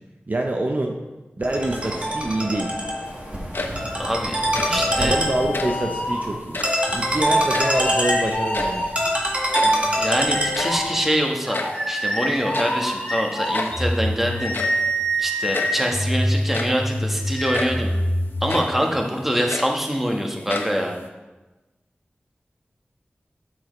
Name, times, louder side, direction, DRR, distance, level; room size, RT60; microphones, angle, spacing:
voice 1, 0.3-1.0 1.4-2.8 4.7-6.6 6.9-9.0, right 1 dB, 45° right, 2 dB, 0.8 m, -26 dB
Ringtone, 1.4-11.0, equal, 30° right, 1.8 m, -24 dB
sound 1, 3.3-4.0 4.4-4.9 5.4-5.9 6.4-6.9 7.3-8.1 8.4-9.0 9.3-9.4 9.5-9.9 10.3-11.9 12.5-12.9 13.5-13.9 14.5-14.9 15.5-15.8 16.4-16.9 17.5-17.9 18.5-18.8 19.2-20.1 20.5-21.1, left 2 dB, 60° left, 0.9 m, -31 dB
voice 2, 4.0-4.4 4.7-5.2 9.6-11.6 11.9-14.5 15.2-17.9 18.4-21.0, equal, 5° right, 1 dB, 1.4 m, -24 dB
sound 2, 5.6-6.6 7.4-9.3 10.3-18.6, equal, 25° left, 2.8 m, -26 dB
8.5 x 7.4 x 3.3 m, 1.1 s
cardioid pair, 40°, 4 cm